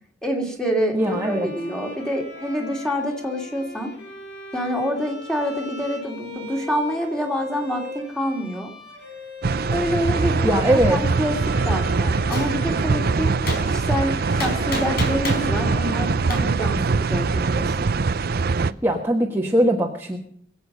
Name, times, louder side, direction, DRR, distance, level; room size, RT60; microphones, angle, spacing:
voice 1, 0.2-1.0 1.2-3.9 4.5-8.7 9.7-11.3 11.6-13.3 13.6-16.8 17.1-17.7, equal, 5° left, 1 dB, 2.8 m, -26 dB
Bowed string instrument, 0.9-16.8, left 3 dB, 85° left, 4.7 m, -39 dB
voice 2, 0.9-1.5 10.4-11.0 18.6-20.2, equal, 15° right, -1 dB, 1.5 m, -21 dB
sound 1, 9.4-18.7, right 4 dB, 60° right, 0.6 m, -22 dB
Gunshot gunfire, 12.3-12.5 13.5-13.6 14.4-15.5 16.3-16.4, left 1 dB, 60° left, 4.6 m, -28 dB
22.5 x 8.4 x 5.5 m, 0.64 s
head